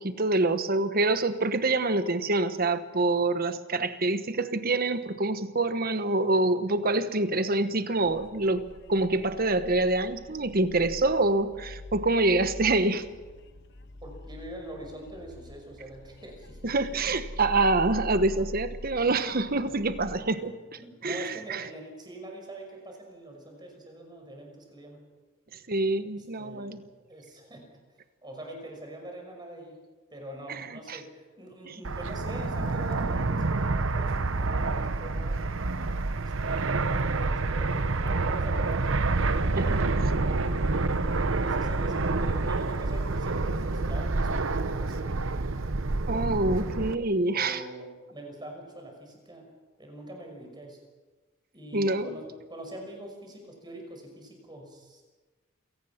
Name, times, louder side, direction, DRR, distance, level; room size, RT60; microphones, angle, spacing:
voice 1, 0.0-8.6 8.9-13.1 16.6-20.5 21.0-21.7 25.7-26.8 30.5-30.6 30.9-31.0 31.6-31.8 39.5-39.8 46.1-47.6 51.7-52.2, right 2 dB, 45° right, 11 dB, 1.2 m, -26 dB
sound 1, 8.1-20.2, left 1 dB, 60° left, 1.0 m, -43 dB
voice 2, 14.0-16.6 19.7-19.8 20.1-20.5 20.8-25.0 26.4-26.8 27.1-27.7 28.2-29.8 30.1-35.4 36.1-39.0 39.6-40.1 41.4-45.1 46.1-46.5 47.3-49.5 49.8-50.8 51.5-55.0, right 1 dB, 20° right, 2 dB, 5.6 m, -44 dB
Fixed-wing aircraft airplane, 31.8-47.0, right 3 dB, 70° right, 0.9 m, -28 dB
27.5 x 18.0 x 5.9 m, 1.3 s
head